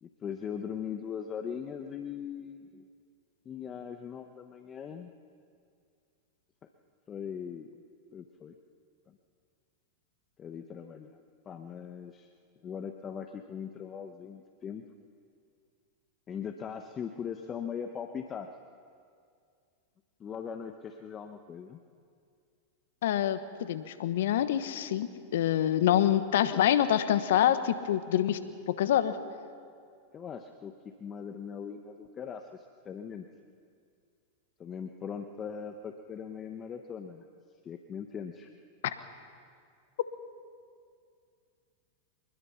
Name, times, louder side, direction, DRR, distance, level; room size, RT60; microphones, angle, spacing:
voice 1, 0.0-2.9 3.4-5.1 6.6-6.7 7.1-7.7 8.1-8.6 10.4-11.1 11.4-12.3 12.6-14.8 16.3-18.5 20.2-21.8 30.1-30.7 31.0-33.3 34.6-37.3 37.6-38.5, left 7 dB, 30° left, 6 dB, 1.2 m, -40 dB
voice 2, 23.0-28.4 28.8-29.1 38.8-39.0, left 11 dB, 70° left, 12 dB, 1.3 m, -26 dB
25.0 x 20.5 x 5.8 m, 2.3 s
hypercardioid pair, 100°, 0 cm